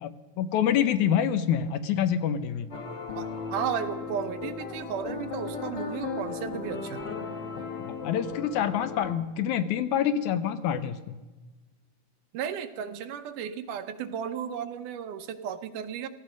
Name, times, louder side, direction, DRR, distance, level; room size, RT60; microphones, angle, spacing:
voice 1, 0.0-2.7 7.9-11.2, left 9 dB, 75° left, 11 dB, 2.0 m, -27 dB
sound 1, 2.7-9.1, left 5 dB, 45° left, 1.6 m, -36 dB
voice 2, 3.2-7.0 12.3-16.1, right 8 dB, 80° right, 9 dB, 2.4 m, -34 dB
17.5 x 14.5 x 5.2 m, 1.2 s
omnidirectional pair, 3.7 m